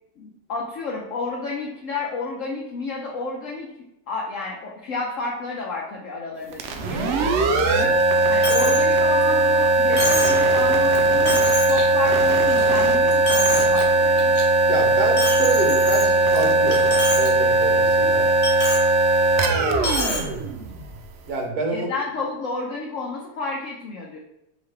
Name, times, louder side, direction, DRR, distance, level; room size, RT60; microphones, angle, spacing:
voice 1, 0.2-3.7 4.1-8.0 8.3-14.3 21.7-24.2, left 3 dB, 60° left, -2 dB, 0.9 m, -31 dB
sound 1, 6.5-21.1, right 2 dB, 85° right, 0.6 m, -19 dB
Coin (dropping), 8.4-8.8 9.2-9.3 10.0-10.4 10.9-11.0 11.3-11.8 12.3-12.8 13.1-13.8 14.2-14.4 15.2-16.4 16.7-17.3 17.6-17.7 18.4-18.9 19.8-20.2, left 2 dB, 90° left, 1.7 m, -27 dB
voice 2, 14.7-16.8 17.1-18.3 19.4-20.3 21.2-21.9, right 3 dB, 65° right, 1 dB, 1.4 m, -28 dB
5.0 x 2.9 x 3.2 m, 0.84 s
omnidirectional pair, 1.8 m